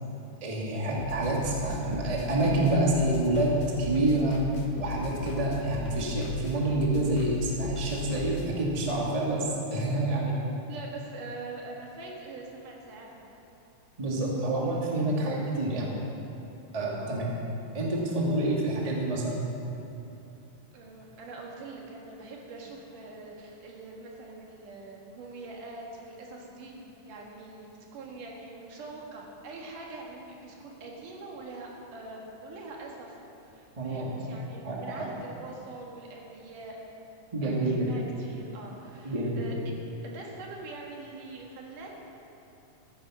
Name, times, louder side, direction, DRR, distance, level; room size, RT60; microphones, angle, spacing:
voice 1, 0.4-4.4 4.8-9.4 9.7-10.3 14.0-15.9 16.7-17.3 17.7-19.4 33.8-34.2 34.6-35.1 37.3-37.9 39.0-39.4, right 1 dB, 15° right, -3 dB, 1.2 m, -28 dB
sound 1, 1.0-8.5, left 1 dB, 65° left, 2.4 m, -36 dB
voice 2, 10.7-13.3 15.2-15.4 17.0-17.4 20.7-33.2 33.4-36.8 37.4-39.6 40.0-41.9, right 3 dB, 80° right, -1 dB, 3.3 m, -44 dB
14.5 x 10.0 x 6.1 m, 2.8 s
omnidirectional pair, 3.7 m